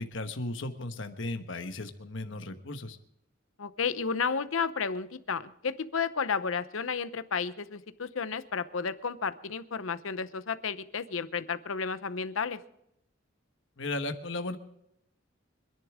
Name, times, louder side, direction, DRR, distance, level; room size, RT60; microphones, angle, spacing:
voice 1, 0.0-3.0 13.8-14.6, left 2 dB, 65° left, 7 dB, 1.2 m, -35 dB
voice 2, 3.6-12.6, left 5 dB, 80° left, 13 dB, 0.8 m, -32 dB
26.0 x 10.5 x 3.6 m, 0.80 s
head